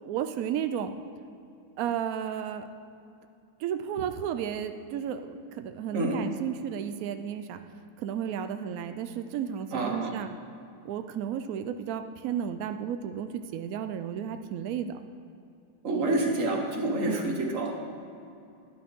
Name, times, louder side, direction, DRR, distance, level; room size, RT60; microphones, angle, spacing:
voice 1, 0.0-0.9 1.8-2.7 3.6-7.6 8.0-10.3 10.8-14.9 17.0-17.3, right 9 dB, 85° right, 8 dB, 0.7 m, -33 dB
voice 2, 9.7-10.1 15.8-17.7, right 2 dB, 45° right, 1 dB, 1.5 m, -28 dB
12.5 x 11.0 x 3.6 m, 2.6 s
omnidirectional pair, 2.1 m